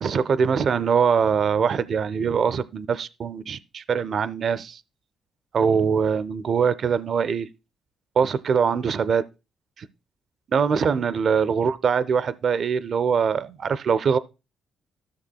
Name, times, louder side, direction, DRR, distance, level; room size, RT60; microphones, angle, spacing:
voice 1, 0.0-4.8 5.5-7.5 8.2-9.2 9.8-9.9 10.5-14.2, right 6 dB, 55° right, 0.4 m, -23 dB
13.0 x 6.6 x 2.3 m
cardioid pair, 90°, 0 cm